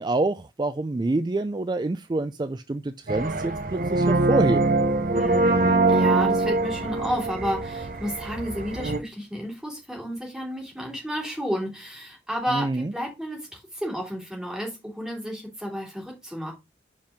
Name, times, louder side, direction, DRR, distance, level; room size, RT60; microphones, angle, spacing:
voice 1, 0.0-4.7 12.5-12.9, right 2 dB, 25° right, 0.3 m, -26 dB
sound 1, 3.1-9.0, right 2 dB, 50° right, 0.8 m, -23 dB
voice 2, 5.1-16.5, equal, 5° right, 3.2 m, -32 dB
5.3 x 5.3 x 4.9 m
head